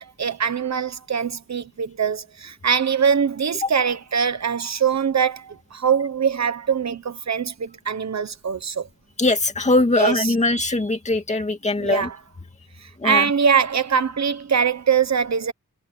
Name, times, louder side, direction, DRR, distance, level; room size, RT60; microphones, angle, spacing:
voice 1, 0.0-8.9 10.0-10.2 11.8-12.2 12.8-15.5, right 7 dB, 55° right, 1.2 m, -22 dB
voice 2, 9.2-12.1 13.0-13.3, left 2 dB, 20° left, 2.3 m, -21 dB
wide cardioid pair, 150°, 32 cm